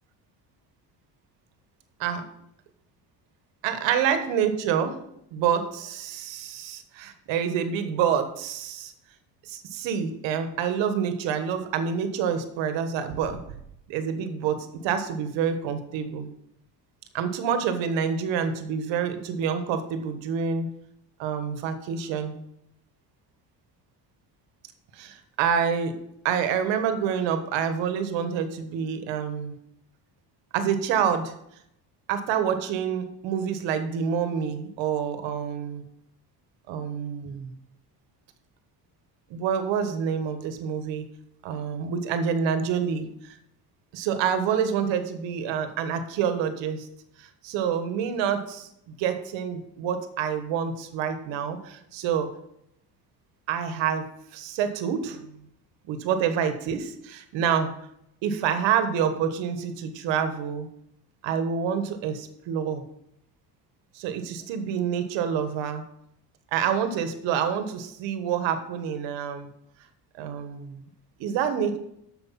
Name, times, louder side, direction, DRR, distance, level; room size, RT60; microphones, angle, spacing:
voice 1, 3.6-5.0 5.3-8.9 9.4-13.4 13.9-16.3 17.1-20.7 21.2-22.4 24.9-25.9 26.2-29.6 30.5-31.4 32.1-35.8 36.7-37.5 39.3-41.1 41.4-43.4 43.9-46.9 47.2-52.3 53.5-54.1 54.3-55.3 55.9-57.7 58.2-60.7 61.2-62.8 63.9-65.8 66.5-69.5 70.2-70.8 71.2-71.8, right 7 dB, 85° right, 9 dB, 1.4 m, -27 dB
8.3 x 6.7 x 5.8 m, 0.78 s
cardioid pair, 125°, 43 cm